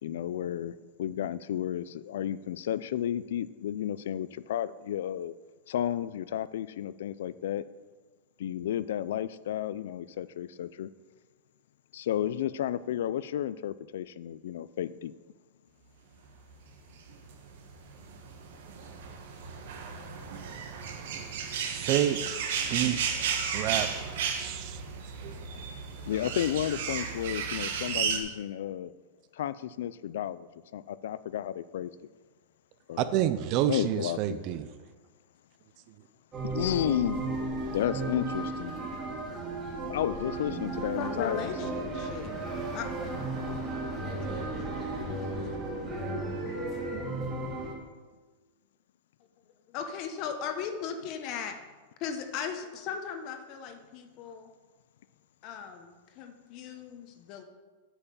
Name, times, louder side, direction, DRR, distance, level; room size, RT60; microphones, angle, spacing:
voice 1, 0.0-5.3 5.7-7.6 8.4-10.9 11.9-15.1 26.1-28.9 29.3-31.9 32.9-33.1 33.7-34.6 36.5-37.4 37.7-38.7 39.9-41.8, left 11 dB, 75° left, 16 dB, 0.4 m, -32 dB
sound 1, 17.1-28.2, right 7 dB, 70° right, 1.4 m, -34 dB
voice 2, 21.7-22.4 22.7-23.0 23.5-24.8 25.2-25.3 33.0-34.7, right 11 dB, 40° right, 11 dB, 0.5 m, -29 dB
sound 2, 36.3-47.7, right 2 dB, 20° right, 2.3 m, -34 dB
voice 3, 40.9-42.4 42.7-42.9 44.7-44.8 49.7-51.6 52.0-54.5 55.4-57.4, left 7 dB, 40° left, 6 dB, 1.0 m, -37 dB
8.3 x 5.7 x 6.9 m, 1.3 s
supercardioid pair, 160°, 0 cm